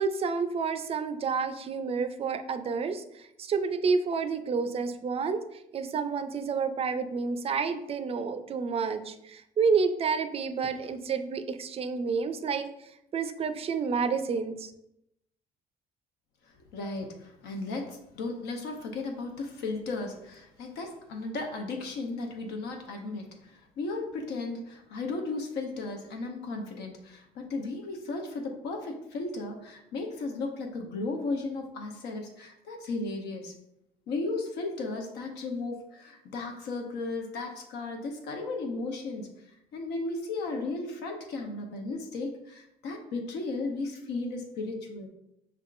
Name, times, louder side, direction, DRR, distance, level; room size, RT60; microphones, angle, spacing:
voice 1, 0.0-5.4 5.7-12.7 13.1-14.7, right 5 dB, 35° right, 10 dB, 0.4 m, -29 dB
voice 2, 16.7-33.5 34.1-39.3 39.7-45.1, left 3 dB, 80° left, 3 dB, 0.9 m, -35 dB
5.6 x 3.5 x 2.5 m, 0.81 s
cardioid pair, 110°, 17 cm